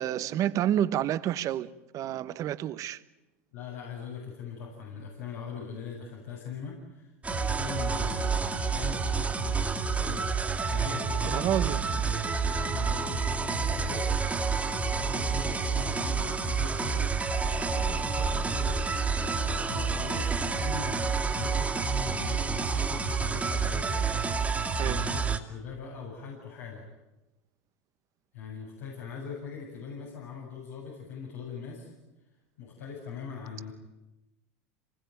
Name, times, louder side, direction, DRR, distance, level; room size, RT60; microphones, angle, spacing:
voice 1, 0.0-3.0 11.2-12.0 24.8-25.1, right 11 dB, 45° right, 1.2 m, -29 dB
voice 2, 3.5-10.3 10.7-12.2 12.5-17.1 17.3-18.8 19.3-24.1 24.8-26.8 28.3-31.9 32.6-33.7, left 6 dB, 80° left, 7.7 m, -41 dB
sound 1, 7.2-25.4, right 5 dB, 15° right, 2.4 m, -29 dB
26.5 x 20.5 x 9.4 m
hypercardioid pair, 100°, 8 cm